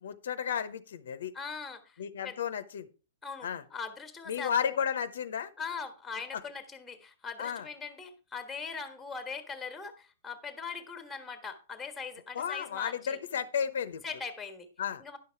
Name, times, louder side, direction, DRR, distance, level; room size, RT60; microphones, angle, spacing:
voice 1, 0.0-1.3 2.0-2.9 3.4-3.6 4.3-5.5 7.4-7.7 12.3-14.0 14.8-15.0, left 8 dB, 75° left, 13 dB, 0.8 m, -33 dB
voice 2, 1.3-2.4 3.2-4.8 5.6-13.2 14.0-14.7 15.0-15.2, left 5 dB, 5° left, 7 dB, 1.4 m, -41 dB
10.5 x 5.8 x 4.5 m, 0.33 s
hypercardioid pair, 150°, 0 cm